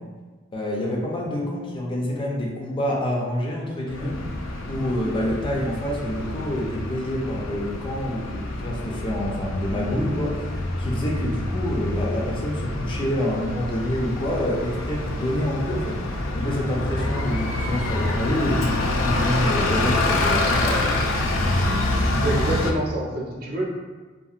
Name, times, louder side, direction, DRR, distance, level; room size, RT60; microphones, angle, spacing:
voice 1, 0.5-4.1 4.7-10.5 10.8-16.0 16.3-20.9, left 1 dB, 25° left, -3 dB, 0.4 m, -27 dB
Bus, 3.9-22.7, left 2 dB, 90° left, 0.4 m, -26 dB
voice 2, 22.2-23.6, right 1 dB, 50° right, -3 dB, 0.5 m, -26 dB
2.7 x 2.5 x 2.4 m, 1.3 s
head